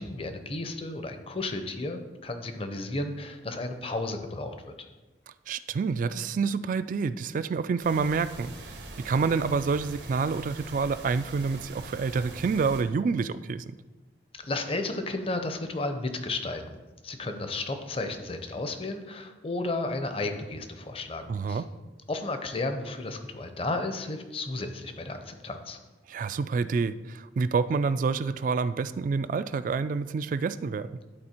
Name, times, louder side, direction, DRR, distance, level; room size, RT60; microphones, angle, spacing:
voice 1, 0.0-4.7 14.3-16.8 17.0-21.6 22.1-25.8, left 2 dB, 30° left, 7 dB, 0.7 m, -33 dB
voice 2, 5.5-13.8 21.3-21.6 26.1-31.0, right 5 dB, 45° right, 13 dB, 0.3 m, -28 dB
sound 1, 7.8-12.8, right 2 dB, 90° right, 1.2 m, -43 dB
11.0 x 4.2 x 4.4 m, 1.2 s
head